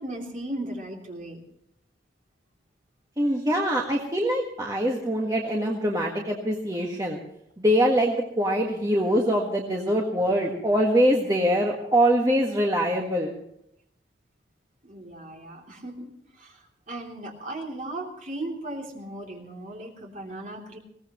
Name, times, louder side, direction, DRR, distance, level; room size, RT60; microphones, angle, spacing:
voice 1, 0.0-1.4 14.8-20.8, right 1 dB, 40° right, 0 dB, 3.1 m, -37 dB
voice 2, 3.2-7.2 7.6-13.3, equal, 20° right, -1 dB, 1.6 m, -23 dB
21.0 x 17.5 x 3.1 m, 0.74 s
head